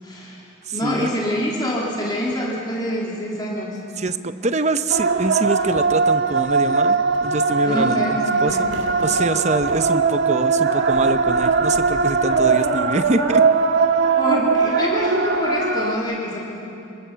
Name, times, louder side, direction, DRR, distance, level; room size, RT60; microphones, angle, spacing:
voice 1, 0.0-3.8 7.6-8.8 14.2-16.5, equal, 20° left, -4 dB, 3.3 m, -26 dB
voice 2, 0.7-1.1 4.0-8.7 9.0-13.4, right 2 dB, 35° right, 10 dB, 0.8 m, -24 dB
sound 1, 4.9-16.0, right 4 dB, 70° right, 1.7 m, -20 dB
26.5 x 23.5 x 6.9 m, 2.8 s
head